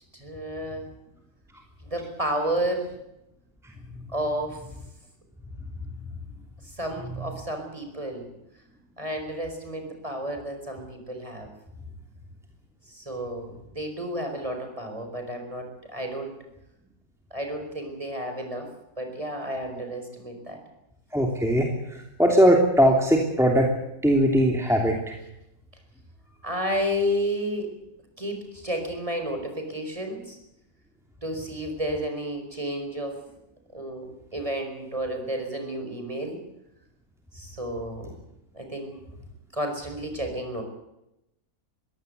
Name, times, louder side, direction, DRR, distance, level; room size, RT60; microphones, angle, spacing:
voice 1, 0.1-0.9 1.8-2.9 4.1-4.6 6.8-8.3 9.0-11.5 12.9-16.3 17.3-18.7 19.0-20.6 26.4-27.7 28.2-30.4 31.2-33.2 33.7-36.4 37.3-38.1 38.5-38.9 39.5-40.6, equal, 20° right, 4 dB, 5.0 m, -31 dB
voice 2, 21.1-21.7 22.2-23.7 24.0-25.0, equal, ahead, 1 dB, 2.9 m, -19 dB
22.5 x 17.0 x 8.1 m, 0.88 s
omnidirectional pair, 1.6 m